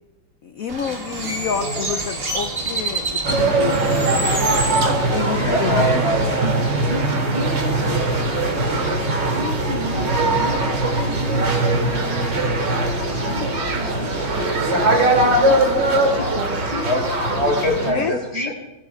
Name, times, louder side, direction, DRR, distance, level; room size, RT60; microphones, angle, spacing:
voice 1, 0.4-4.4 5.1-5.9 17.9-18.1, left 7 dB, 75° left, 8 dB, 0.8 m, -28 dB
Bird, 0.7-5.7, right 2 dB, 30° right, 1.7 m, -27 dB
voice 2, 1.2-1.9 5.3-6.4 16.8-17.0 17.3-18.5, equal, 30° left, -2 dB, 5.1 m, -24 dB
sound 1, 3.2-17.9, right 2 dB, 65° right, 3.1 m, -20 dB
voice 3, 6.4-8.8 9.3-12.0 13.2-15.1 15.9-16.9 17.8-18.5, equal, 80° right, -5 dB, 5.9 m, -33 dB
25.0 x 15.5 x 2.3 m, 1.0 s
omnidirectional pair, 2.1 m